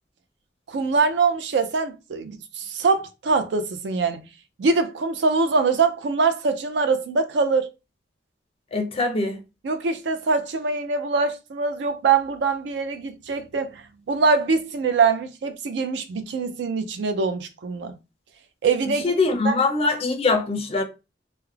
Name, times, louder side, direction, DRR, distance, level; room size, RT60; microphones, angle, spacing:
voice 1, 0.7-4.2 4.6-7.7 9.6-13.8 14.1-17.9 18.6-19.0 19.4-19.5, right 4 dB, 65° right, 0.4 m, -23 dB
voice 2, 8.7-9.4 19.0-20.8, left 3 dB, 35° left, 0.4 m, -22 dB
2.3 x 2.0 x 3.1 m
head